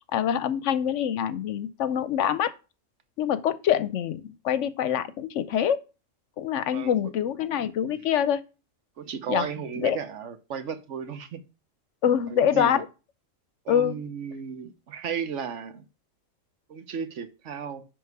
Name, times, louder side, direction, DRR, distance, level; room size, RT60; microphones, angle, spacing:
voice 1, 0.1-2.5 3.2-5.8 6.4-8.4 9.3-9.5 9.8-10.0 12.0-12.8 13.7-14.0, left 9 dB, 70° left, 0.9 m, -25 dB
voice 2, 9.0-11.5 12.3-12.8 13.6-15.9 16.7-17.8, right 7 dB, 70° right, 1.2 m, -34 dB
10.5 x 3.7 x 4.6 m
omnidirectional pair, 1.3 m